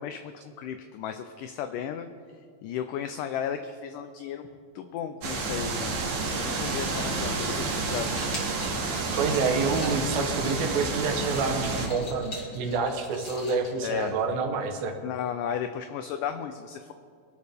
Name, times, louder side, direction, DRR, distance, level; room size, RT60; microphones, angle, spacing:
voice 1, 0.0-2.1 2.6-4.5 4.8-8.1 13.8-14.1 15.0-16.9, left 8 dB, 80° left, 8 dB, 2.0 m, -34 dB
sound 1, 5.2-11.9, right 3 dB, 60° right, 3.4 m, -30 dB
sound 2, 7.6-14.5, left 2 dB, 35° left, 3.1 m, -45 dB
voice 2, 9.1-15.0, right 4 dB, 75° right, 4 dB, 2.9 m, -28 dB
24.0 x 11.5 x 3.5 m, 2.1 s
omnidirectional pair, 4.3 m